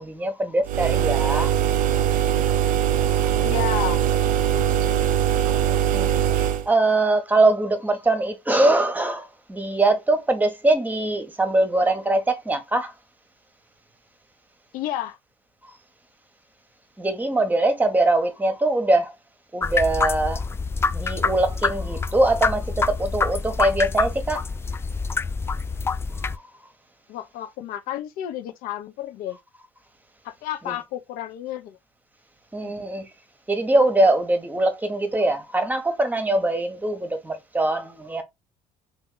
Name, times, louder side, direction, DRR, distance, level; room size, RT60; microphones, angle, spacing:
voice 1, 0.0-1.5 3.1-3.4 5.5-12.9 17.0-19.1 19.5-20.5 20.9-24.6 26.2-26.4 30.6-30.8 32.5-33.1 33.5-38.2, right 2 dB, 10° right, 1.1 m, -22 dB
sound 1, 0.7-6.7, right 10 dB, 60° right, 0.5 m, -21 dB
voice 2, 3.4-4.1 4.5-5.0 14.7-15.2 27.1-29.4 30.2-31.8 32.6-32.7, left 12 dB, 70° left, 0.7 m, -32 dB
sound 2, 19.6-26.4, left 4 dB, 15° left, 0.3 m, -26 dB
3.0 x 2.4 x 3.7 m
hypercardioid pair, 70°, 15 cm